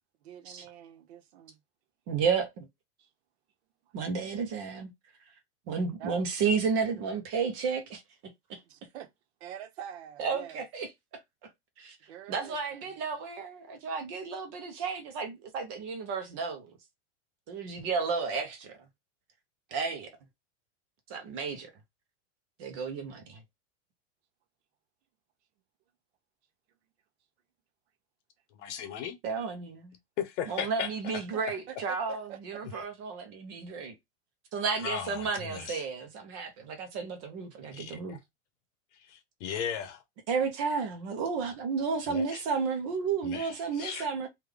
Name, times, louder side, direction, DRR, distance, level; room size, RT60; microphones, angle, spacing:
voice 1, 0.2-1.6 3.0-3.1 3.8-3.9 6.0-6.2 8.7-9.1 9.4-10.6 12.1-12.9 31.3-32.6, right 10 dB, 60° right, 0.8 m, -46 dB
voice 2, 2.1-2.7 3.9-4.9 5.7-8.0 8.5-8.6 10.2-10.9 11.4-11.5 11.8-12.0 12.3-16.7 17.5-18.8 19.7-20.1 21.1-21.7 22.6-23.4 29.2-29.9 30.5-33.9 34.5-38.2 40.3-44.3, right 5 dB, 25° right, 0.5 m, -32 dB
voice 3, 28.5-29.2 30.2-31.2 34.8-35.9 37.7-38.2 39.0-40.0 42.1-42.4 43.2-44.1, left 8 dB, 70° left, 1.0 m, -37 dB
3.5 x 2.2 x 3.3 m
supercardioid pair, 175°, 36 cm